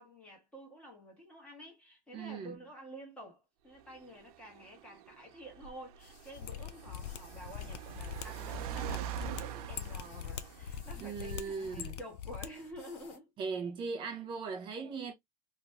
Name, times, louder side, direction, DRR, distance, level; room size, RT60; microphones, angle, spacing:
voice 1, 0.0-13.3, equal, 5° left, 1.4 m, -50 dB
voice 2, 2.1-2.6 11.0-12.0 13.4-15.1, right 5 dB, 25° right, 0.7 m, -38 dB
Car, 3.7-11.7, right 10 dB, 70° right, 0.6 m, -44 dB
sound 1, 6.0-13.2, left 4 dB, 45° left, 1.3 m, -59 dB
Mechanisms, 6.3-12.5 12.7-12.8, left 9 dB, 80° left, 0.6 m, -43 dB
3.0 x 2.6 x 3.3 m
supercardioid pair, 175°, 20 cm